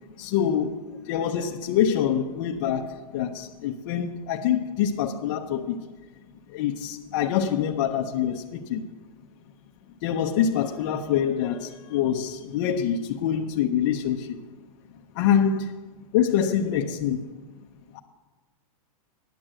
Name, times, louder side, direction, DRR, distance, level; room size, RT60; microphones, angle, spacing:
voice 1, 0.2-5.9 6.5-8.9 10.0-14.4 15.2-15.6 16.1-17.3 17.9-18.0, left 9 dB, 35° left, 1 dB, 0.6 m, -25 dB
10.5 x 8.9 x 7.5 m, 1.3 s
supercardioid pair, 175°, 19 cm